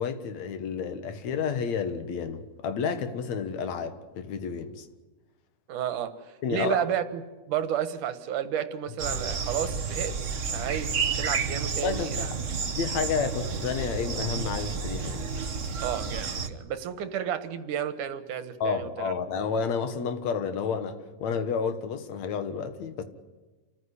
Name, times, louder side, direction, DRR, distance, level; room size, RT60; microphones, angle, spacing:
voice 1, 0.0-4.9 6.4-6.8 11.8-12.3 12.8-15.3 18.6-23.0, left 6 dB, 65° left, 2.7 m, -30 dB
voice 2, 5.7-7.2 7.5-10.2 10.4-12.3 15.8-19.1, right 9 dB, 80° right, 2.9 m, -32 dB
sound 1, 9.0-16.5, right 5 dB, 60° right, 0.7 m, -31 dB
28.5 x 14.5 x 9.9 m
omnidirectional pair, 3.6 m